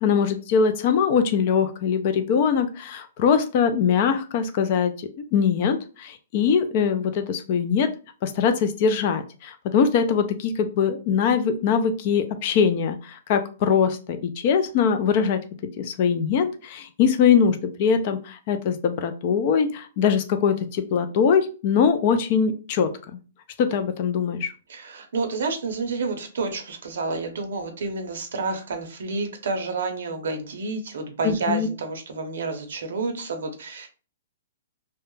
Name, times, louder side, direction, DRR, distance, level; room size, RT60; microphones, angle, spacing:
voice 1, 0.0-7.9 8.2-15.4 15.8-22.9 23.6-24.5 31.2-31.7, left 6 dB, 30° left, 8 dB, 0.3 m, -22 dB
voice 2, 24.7-33.9, right 3 dB, 65° right, 5 dB, 0.6 m, -29 dB
2.2 x 2.0 x 3.0 m, 0.35 s
hypercardioid pair, 175°, 0 cm